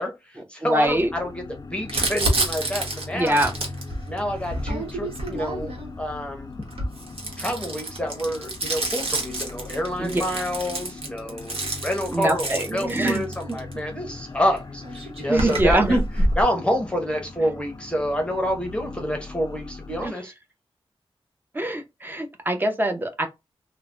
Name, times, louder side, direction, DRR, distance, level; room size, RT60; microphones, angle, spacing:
voice 1, 0.0-3.4 4.1-6.5 7.4-16.0 16.4-20.3, equal, 10° left, 0.7 m, -28 dB
voice 2, 0.6-1.1 3.1-3.5 10.0-10.2 12.1-13.2 13.5-13.6 15.3-16.0 20.0-20.1 21.5-23.3, right 1 dB, 20° right, 0.6 m, -23 dB
sound 1, 0.9-20.1, left 3 dB, 40° left, 0.4 m, -40 dB
Crumpling crinkling, 1.9-5.9 6.6-13.7 14.6-14.7 14.8-16.4, right 1 dB, 85° right, 0.9 m, -28 dB
3.2 x 2.1 x 2.5 m
wide cardioid pair, 120°, 10 cm